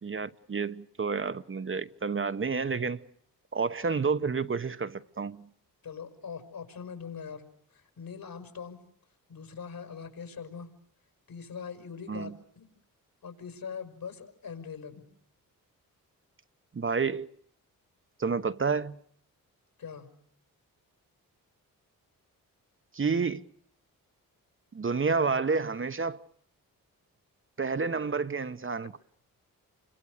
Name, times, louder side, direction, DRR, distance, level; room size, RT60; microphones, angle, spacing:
voice 1, 0.0-3.1 3.5-5.5 12.1-12.3 16.7-17.3 18.2-19.0 22.9-23.5 24.7-26.2 27.6-29.0, right 5 dB, 35° right, 1.0 m, -30 dB
voice 2, 5.8-8.8 9.3-10.7 11.3-12.7 13.2-15.1 19.8-20.1, left 6 dB, 65° left, 5.5 m, -42 dB
29.0 x 25.0 x 6.6 m
cardioid pair, 65°, 36 cm